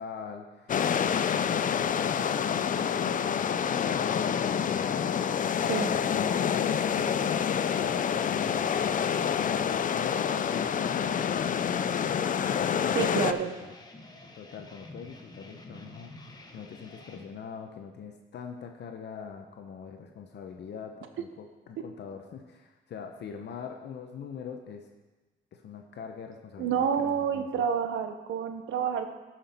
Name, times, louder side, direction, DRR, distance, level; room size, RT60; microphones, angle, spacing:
voice 1, 0.0-5.4 5.6-12.1 12.6-13.7 14.3-24.9 25.5-27.6, left 6 dB, 60° left, 4 dB, 0.9 m, -43 dB
sound 1, 0.7-13.3, left 8 dB, 40° left, 0.5 m, -27 dB
sound 2, 10.4-17.2, left 1 dB, 20° left, 1.4 m, -48 dB
voice 2, 12.9-13.6 26.6-29.1, right 7 dB, 75° right, 8 dB, 1.0 m, -28 dB
12.5 x 5.9 x 4.4 m, 1.2 s
cardioid pair, 90°, 20 cm